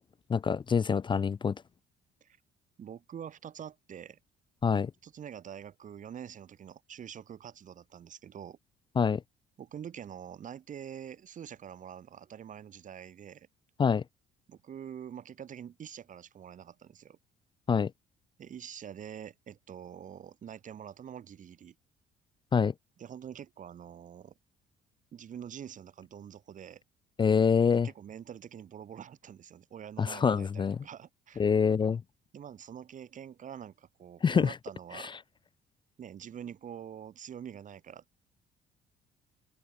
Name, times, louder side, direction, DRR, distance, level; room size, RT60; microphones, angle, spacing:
voice 1, 0.3-1.5 4.6-4.9 9.0-9.2 13.8-14.0 17.7-17.9 22.5-22.7 27.2-27.9 30.0-30.8 31.4-32.0 34.2-34.5 34.9-35.1, left 6 dB, 30° left, 0.6 m, -25 dB
voice 2, 2.8-4.2 5.0-8.6 9.6-13.5 14.5-17.2 18.4-21.7 23.0-24.3 25.1-26.8 27.7-31.4 32.3-35.1 36.0-38.0, right 9 dB, 50° right, 7.4 m, -45 dB
open air
cardioid pair, 110°, 17 cm